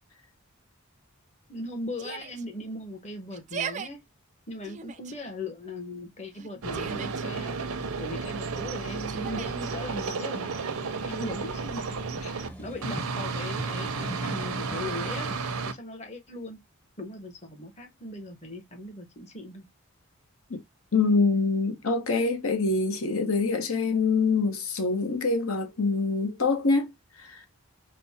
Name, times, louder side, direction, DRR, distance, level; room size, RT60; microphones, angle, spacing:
voice 1, 1.5-4.0 4.5-7.5 8.0-12.0 12.3-15.3 15.6-16.6 17.0-19.6, left 1 dB, 30° left, 1.0 m, -39 dB
Yell, 2.0-2.4 3.3-3.9 4.6-5.1 6.3-7.3 9.1-9.7, right 7 dB, 35° right, 0.4 m, -37 dB
sound 1, 6.6-12.5 12.8-15.7, right 4 dB, 90° right, 0.6 m, -32 dB
sound 2, 10.3-13.1 13.5-15.4, right 1 dB, 5° left, 0.7 m, -42 dB
voice 2, 20.9-26.9 27.2-27.5, left 4 dB, 75° left, 1.0 m, -25 dB
5.3 x 2.1 x 4.1 m
head